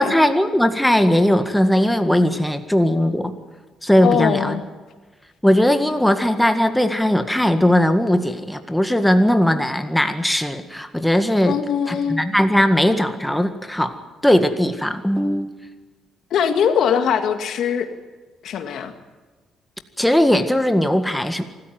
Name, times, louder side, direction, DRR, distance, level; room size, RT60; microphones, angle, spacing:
voice 1, 0.0-3.3 3.8-4.6 5.4-11.6 11.9-15.5 20.0-21.4, equal, 5° left, 7 dB, 1.8 m, -18 dB
voice 2, 4.0-4.6 11.4-12.2 16.3-17.9 18.4-18.9, left 8 dB, 70° left, 7 dB, 2.1 m, -21 dB
25.0 x 14.0 x 9.5 m, 1.3 s
cardioid pair, 90°, 0 cm